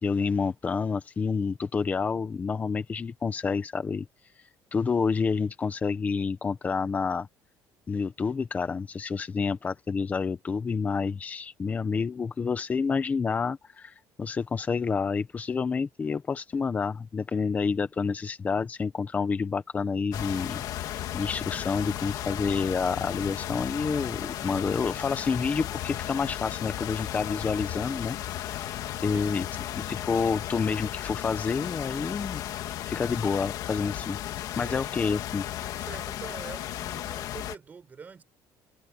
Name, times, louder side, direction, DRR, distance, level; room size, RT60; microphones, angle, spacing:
voice 1, 0.0-4.1 4.7-7.3 7.9-28.7 29.0-29.4 29.7-32.4 32.8-34.2 34.6-35.4, left 5 dB, 20° left, 1.1 m, -29 dB
sound 1, 20.1-37.6, left 12 dB, 55° left, 1.9 m, -35 dB
voice 2, 28.5-29.6 34.0-34.1 34.5-34.9 35.8-38.2, right 5 dB, 25° right, 5.2 m, -46 dB
cardioid pair, 160°, 7 cm